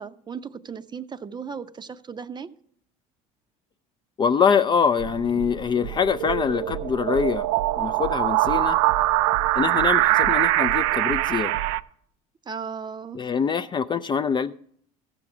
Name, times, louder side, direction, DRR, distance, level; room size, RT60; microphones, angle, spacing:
voice 1, 0.0-2.5 12.5-13.2, right 6 dB, 25° right, 0.6 m, -36 dB
voice 2, 4.2-7.5 7.8-8.8 9.5-11.5 13.1-14.5, left 6 dB, 25° left, 0.3 m, -24 dB
sound 1, 5.0-11.8, right 15 dB, 75° right, 0.4 m, -23 dB
15.0 x 6.0 x 4.8 m
supercardioid pair, 85°, 18 cm